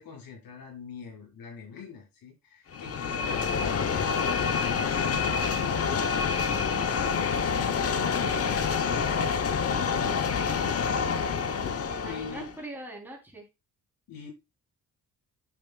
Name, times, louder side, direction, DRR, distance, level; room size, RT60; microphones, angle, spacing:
voice 1, 0.0-5.3 11.5-12.4 14.1-14.3, left 5 dB, 90° left, 5.5 m, -44 dB
sound 1, 2.7-12.6, left 6 dB, 45° left, 0.9 m, -27 dB
voice 2, 6.1-7.0 11.8-13.5, right 2 dB, 5° right, 3.3 m, -43 dB
10.0 x 8.5 x 2.3 m
wide cardioid pair, 165°, 33 cm